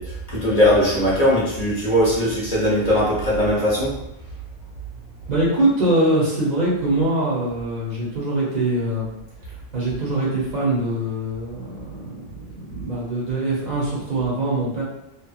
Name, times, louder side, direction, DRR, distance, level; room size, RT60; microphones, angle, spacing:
voice 1, 0.0-3.9, equal, 45° left, -7 dB, 0.7 m, -19 dB
voice 2, 5.3-9.1 9.7-14.8, right 1 dB, 45° right, -7 dB, 0.9 m, -23 dB
2.8 x 2.3 x 2.4 m, 0.85 s
omnidirectional pair, 1.1 m